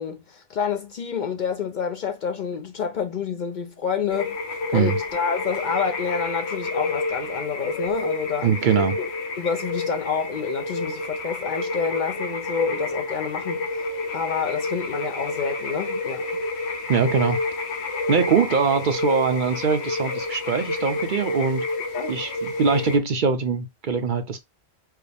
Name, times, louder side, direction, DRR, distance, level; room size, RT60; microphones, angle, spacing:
voice 1, 0.0-4.4 4.7-8.5 9.0-9.1 9.4-16.3 21.9-22.1, left 6 dB, 55° left, 0.6 m, -28 dB
sound 1, 4.1-23.0, left 2 dB, 85° left, 1.0 m, -29 dB
voice 2, 8.4-9.0 16.9-17.4 18.1-21.6 22.1-24.4, right 5 dB, 55° right, 0.7 m, -22 dB
4.7 x 2.0 x 3.3 m
omnidirectional pair, 1.1 m